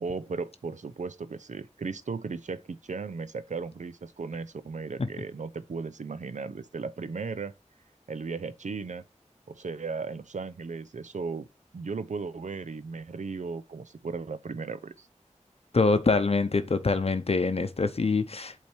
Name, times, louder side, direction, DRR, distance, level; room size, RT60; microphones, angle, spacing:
voice 1, 0.0-7.5 8.1-9.0 9.5-11.5 11.7-15.1, right 4 dB, 75° right, 0.5 m, -36 dB
voice 2, 15.7-18.5, left 3 dB, 55° left, 0.7 m, -25 dB
8.3 x 3.4 x 4.4 m
wide cardioid pair, 75°, 12 cm